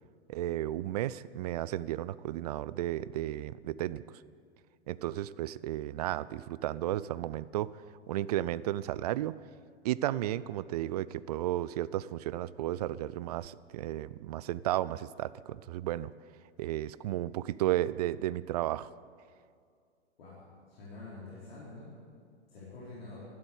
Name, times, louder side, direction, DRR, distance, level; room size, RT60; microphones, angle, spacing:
voice 1, 0.3-4.2 4.9-7.7 8.1-9.3 9.8-16.1 16.6-18.9, right 14 dB, 40° right, 18 dB, 0.4 m, -33 dB
voice 2, 20.2-21.9 22.5-23.3, left 3 dB, 60° left, -7 dB, 4.0 m, -47 dB
12.5 x 12.0 x 8.4 m, 2.2 s
figure-of-eight pair, 105°, 33 cm